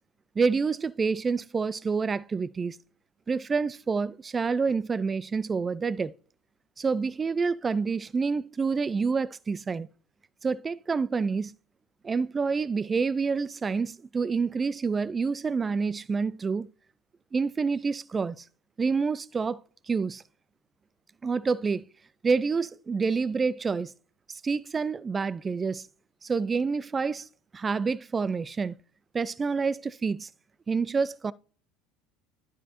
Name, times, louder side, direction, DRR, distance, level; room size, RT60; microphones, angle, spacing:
voice 1, 0.4-2.8 3.3-6.1 6.8-9.9 10.4-11.5 12.0-16.7 17.3-18.4 18.8-19.6 19.9-20.2 21.2-21.8 22.2-23.9 24.4-25.9 26.2-27.3 27.5-28.8 29.1-30.3 30.7-31.3, right 5 dB, 25° right, 0.3 m, -28 dB
11.5 x 4.9 x 2.9 m
hypercardioid pair, 70°, 0 cm